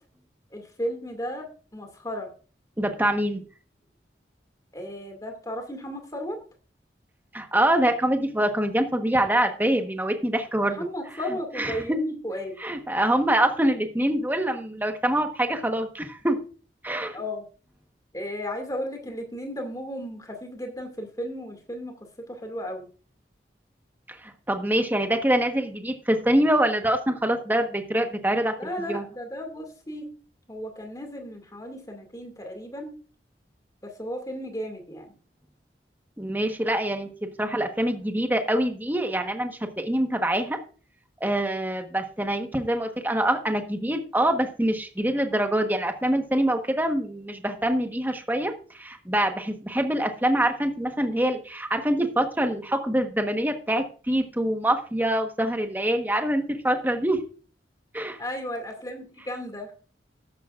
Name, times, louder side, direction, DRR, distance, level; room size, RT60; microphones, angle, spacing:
voice 1, 0.5-2.3 4.7-6.4 10.7-12.6 17.1-17.4 18.1-22.9 28.6-30.1 30.5-32.9 33.8-35.1 58.2-59.7, equal, 20° left, 4 dB, 2.3 m, -34 dB
voice 2, 2.8-3.4 7.3-10.9 11.6-12.0 12.6-16.4 16.8-17.2 24.1-28.5 28.9-29.0 36.2-40.6 41.2-57.2 57.9-58.2, right 1 dB, 10° right, 5 dB, 1.2 m, -25 dB
13.5 x 11.0 x 2.5 m, 0.38 s
head